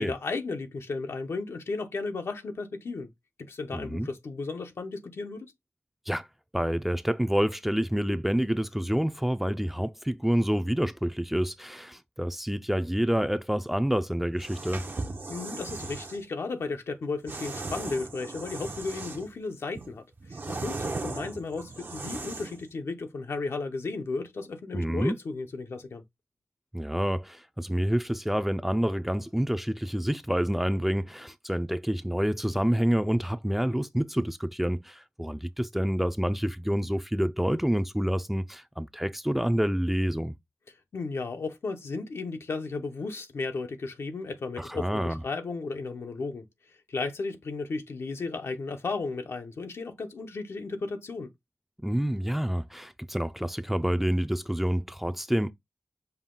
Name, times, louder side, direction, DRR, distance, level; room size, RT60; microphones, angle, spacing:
voice 1, 0.0-3.1 3.4-5.5 15.3-26.0 40.9-46.5 46.9-51.3, left 3 dB, 85° left, 0.7 m, -34 dB
voice 2, 3.7-4.1 6.1-6.3 6.5-14.9 24.7-25.1 26.7-40.3 44.6-45.2 51.8-55.5, equal, 5° right, 0.4 m, -28 dB
sound 1, 14.3-16.2 17.3-19.4 19.8-22.7, right 3 dB, 50° right, 0.7 m, -37 dB
5.6 x 2.2 x 3.7 m
cardioid pair, 55°, 4 cm